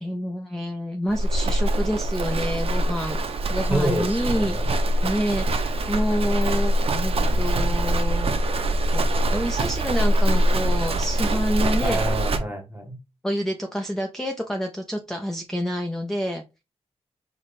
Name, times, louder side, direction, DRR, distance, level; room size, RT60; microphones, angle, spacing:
voice 1, 0.0-3.2 3.5-4.6 5.0-8.3 8.9-12.0 13.2-16.4, equal, 5° left, 0.4 m, -28 dB
Livestock farm animals working animals, 1.1-12.4, right 1 dB, 60° right, 0.6 m, -23 dB
voice 2, 3.7-4.7 11.8-13.0, right 1 dB, 15° right, 1.0 m, -28 dB
4.9 x 2.1 x 4.1 m
wide cardioid pair, 120°, 11 cm